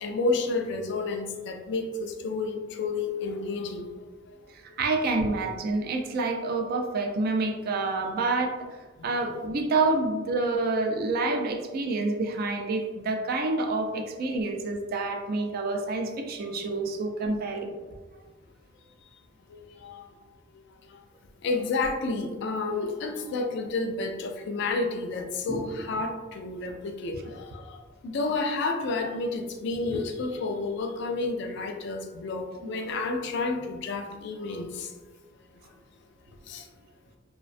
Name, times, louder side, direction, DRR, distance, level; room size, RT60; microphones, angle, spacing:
voice 1, 0.0-3.9 19.5-20.1 21.4-34.9 36.5-36.6, left 3 dB, 65° left, 5 dB, 0.3 m, -30 dB
voice 2, 4.6-8.6 9.0-17.7 25.5-25.8 27.3-27.4, right 3 dB, 50° right, 4 dB, 0.3 m, -28 dB
2.4 x 2.2 x 2.4 m, 1.3 s
head